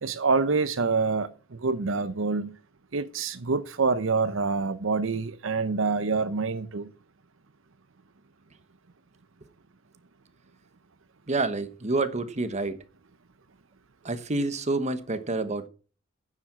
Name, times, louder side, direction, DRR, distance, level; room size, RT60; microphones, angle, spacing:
voice 1, 0.0-2.5 2.9-6.9, right 4 dB, 75° right, 0.8 m, -26 dB
voice 2, 11.3-12.8 14.0-15.7, right 2 dB, 35° right, 1.1 m, -28 dB
9.8 x 7.4 x 7.4 m
head